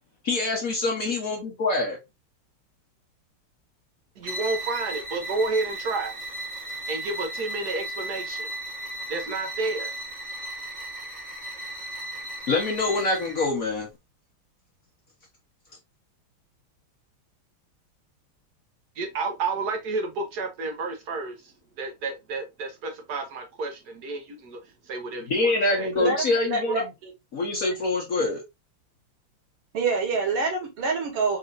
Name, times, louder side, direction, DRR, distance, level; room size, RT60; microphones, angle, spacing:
voice 1, 0.2-2.0 12.5-13.9 25.3-26.8 27.3-28.4, left 3 dB, 55° left, 1.0 m, -25 dB
sound 1, 4.2-13.6, right 1 dB, 25° right, 0.9 m, -35 dB
voice 2, 4.2-6.2 6.9-8.5 9.1-9.9 19.0-21.3 21.8-24.6 24.9-25.9, right 3 dB, 55° right, 1.2 m, -30 dB
voice 3, 26.0-27.1 27.4-27.6 29.7-31.4, right 4 dB, 90° right, 2.2 m, -26 dB
4.1 x 3.8 x 2.5 m
omnidirectional pair, 2.4 m